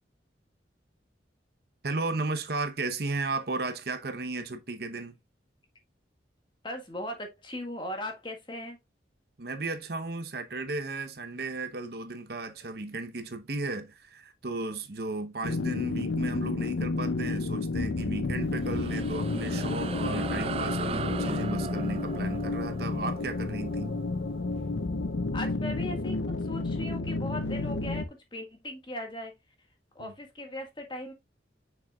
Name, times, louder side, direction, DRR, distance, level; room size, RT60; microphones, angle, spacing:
voice 1, 1.8-5.2 9.4-23.9 30.0-30.1, right 3 dB, 60° right, 0.9 m, -35 dB
voice 2, 6.6-8.8 25.3-26.2 26.4-29.3 29.9-31.1, left 1 dB, 25° left, 1.6 m, -38 dB
sound 1, 15.4-28.1, left 3 dB, 75° left, 0.6 m, -31 dB
sound 2, 18.4-25.2, right 4 dB, 30° right, 0.3 m, -38 dB
7.0 x 6.1 x 2.3 m
head